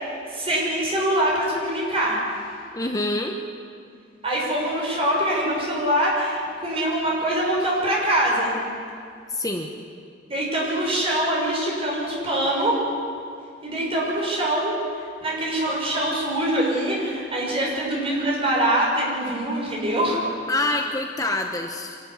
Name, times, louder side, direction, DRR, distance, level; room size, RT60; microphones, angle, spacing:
voice 1, 0.3-2.2 4.2-8.5 10.3-12.8 13.6-14.8 15.2-20.2, right 1 dB, 30° right, -4 dB, 6.5 m, -24 dB
voice 2, 2.7-3.4 9.3-9.7 20.5-22.0, left 2 dB, 20° left, 3 dB, 1.0 m, -26 dB
25.5 x 13.5 x 9.9 m, 2.3 s
head